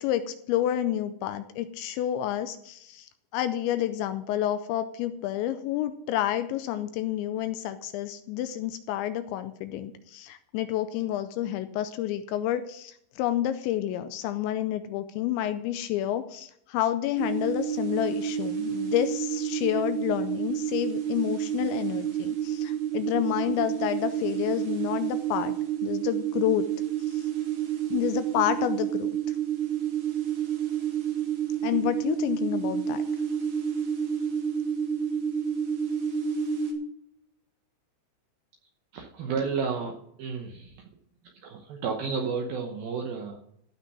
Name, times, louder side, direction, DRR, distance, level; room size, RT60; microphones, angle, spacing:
voice 1, 0.0-25.5 25.8-26.7 27.1-27.3 27.9-29.1 31.6-33.0, left 12 dB, 80° left, 11 dB, 2.7 m, -29 dB
sound 1, 17.2-36.7, right 9 dB, 55° right, 2.3 m, -29 dB
voice 2, 38.9-40.9 41.3-43.4, right 5 dB, 75° right, 1 dB, 2.2 m, -32 dB
15.5 x 5.8 x 6.1 m, 0.73 s
omnidirectional pair, 5.5 m